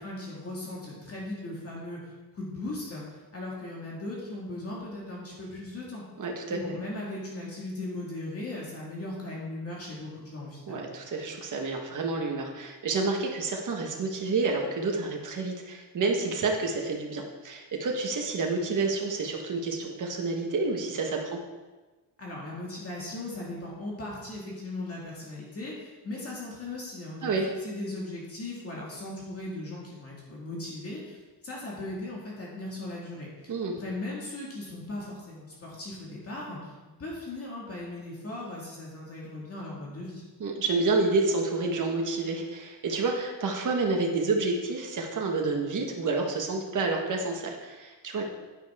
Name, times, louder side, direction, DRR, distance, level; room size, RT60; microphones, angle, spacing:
voice 1, 0.0-2.0 2.3-3.0 3.3-6.0 6.5-10.9 22.2-27.3 27.6-36.7 37.0-40.2, left 2 dB, 35° left, -4 dB, 2.1 m, -38 dB
voice 2, 6.2-6.6 10.7-21.4 27.2-27.5 33.5-33.8 40.4-48.2, right 3 dB, 45° right, 1 dB, 1.5 m, -29 dB
10.0 x 9.3 x 3.6 m, 1.2 s
wide cardioid pair, 175°, 43 cm